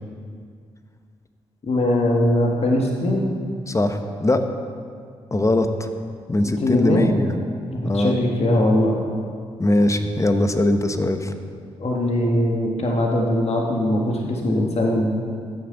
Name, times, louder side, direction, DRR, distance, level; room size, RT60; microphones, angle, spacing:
voice 1, 1.6-3.2 6.4-7.1 7.7-9.0 11.8-15.1, left 1 dB, 50° left, -1 dB, 1.6 m, -21 dB
voice 2, 3.7-4.4 5.3-5.9 6.3-7.3 7.8-8.1 9.6-11.3, left 1 dB, 20° left, 7 dB, 1.0 m, -21 dB
14.5 x 6.8 x 3.9 m, 2.2 s
hypercardioid pair, 40°, 14 cm